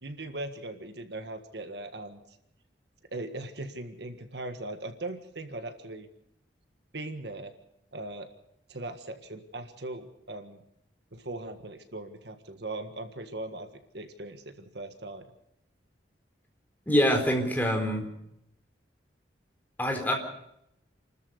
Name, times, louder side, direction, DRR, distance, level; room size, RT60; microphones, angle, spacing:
voice 1, 0.0-2.2 3.1-6.1 6.9-7.5 7.9-8.3 8.7-10.6 11.1-13.7 13.9-15.2, right 2 dB, 65° right, 8 dB, 1.7 m, -39 dB
voice 2, 16.9-18.1 19.8-20.1, equal, 10° left, 3 dB, 4.0 m, -25 dB
29.0 x 13.5 x 6.7 m, 0.79 s
head